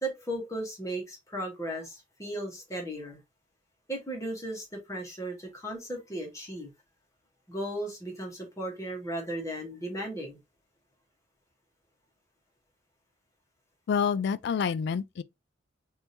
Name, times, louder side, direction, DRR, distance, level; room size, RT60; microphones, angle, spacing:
voice 1, 0.0-3.2 3.9-6.7 7.5-10.4, right 1 dB, 15° left, 1.3 m, -36 dB
voice 2, 13.9-15.2, left 6 dB, 65° left, 0.3 m, -28 dB
3.5 x 2.7 x 2.8 m
head